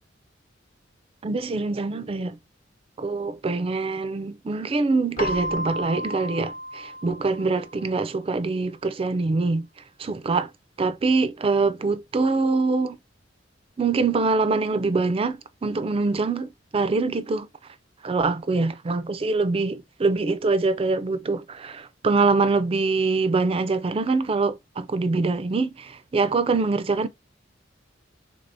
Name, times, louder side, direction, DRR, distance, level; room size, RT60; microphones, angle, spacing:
voice 1, 1.2-2.4 3.0-9.7 10.0-10.5 10.8-13.0 13.8-17.5 18.0-27.1, right 3 dB, 30° right, 0.4 m, -24 dB
Keyboard (musical), 5.2-7.9, left 1 dB, 40° left, 0.8 m, -32 dB
3.3 x 3.3 x 2.5 m
head